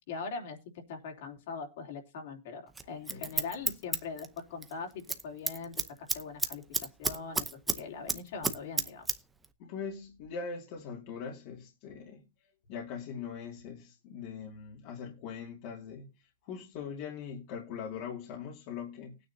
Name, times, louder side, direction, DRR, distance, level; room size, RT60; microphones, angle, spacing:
voice 1, 0.1-9.1, left 5 dB, 50° left, 3.1 m, -42 dB
Scissors, 2.8-4.7 5.0-5.2 5.5-7.8 8.1-9.2 9.4-9.5, right 4 dB, 5° right, 0.7 m, -31 dB
voice 2, 9.6-12.2 12.7-19.3, left 6 dB, 35° left, 2.2 m, -41 dB
20.0 x 9.4 x 2.8 m
supercardioid pair, 175°, 0 cm